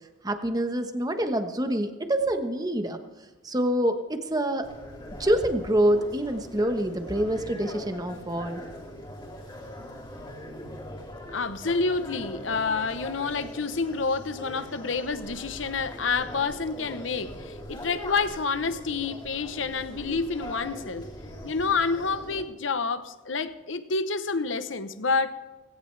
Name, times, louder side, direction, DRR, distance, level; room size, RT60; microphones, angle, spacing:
voice 1, 0.2-3.0 3.4-4.7 5.2-8.6, right 1 dB, 20° right, 7 dB, 1.2 m, -26 dB
sound 1, 4.6-22.4, left 1 dB, 25° left, 3.6 m, -41 dB
voice 2, 11.3-21.1 21.4-25.3, left 4 dB, 85° left, 12 dB, 0.9 m, -28 dB
19.0 x 17.5 x 3.4 m, 1.2 s
head